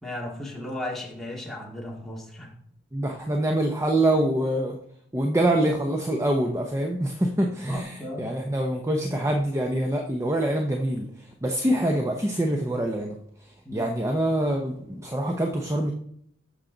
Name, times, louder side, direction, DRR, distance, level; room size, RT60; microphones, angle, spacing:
voice 1, 0.0-2.5 7.3-8.3 13.6-13.9, left 1 dB, ahead, -3 dB, 2.1 m, -36 dB
voice 2, 2.9-4.8 5.1-11.1 11.4-13.2 13.7-15.9, right 1 dB, 15° right, 2 dB, 0.7 m, -25 dB
14.5 x 6.4 x 3.9 m, 0.70 s
head